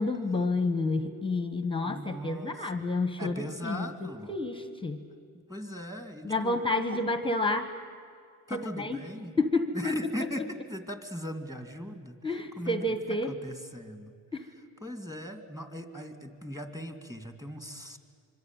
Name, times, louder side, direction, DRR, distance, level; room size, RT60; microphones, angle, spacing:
voice 1, 0.0-5.0 6.2-7.7 8.5-9.0 9.4-10.0 12.2-13.3 14.3-14.5, left 2 dB, 10° left, 9 dB, 1.4 m, -30 dB
voice 2, 1.8-2.8 3.2-4.3 5.5-6.6 6.9-7.1 8.5-9.3 9.7-12.2 12.6-14.1 14.8-18.0, equal, 10° right, 7 dB, 2.4 m, -39 dB
25.0 x 24.5 x 9.1 m, 2.2 s
cardioid pair, 110°, 46 cm